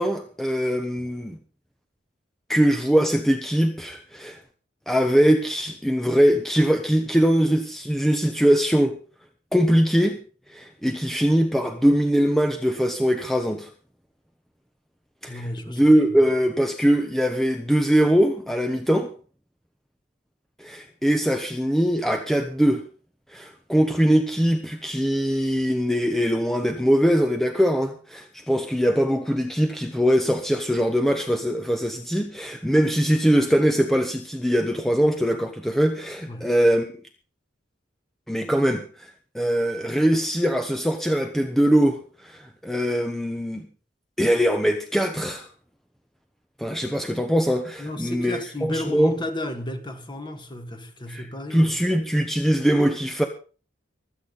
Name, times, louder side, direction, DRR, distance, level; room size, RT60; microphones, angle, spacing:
voice 1, 0.0-1.4 2.5-4.4 4.9-9.0 9.5-10.2 10.5-13.7 15.2-19.1 20.6-22.8 23.3-36.9 38.3-39.1 39.3-43.6 44.2-45.5 46.6-49.1 51.1-51.3 51.5-53.2, equal, ahead, 1.0 m, -22 dB
voice 2, 15.3-15.8 36.3-36.5 47.8-51.8, left 1 dB, 25° left, 1.9 m, -33 dB
24.5 x 8.4 x 4.1 m
head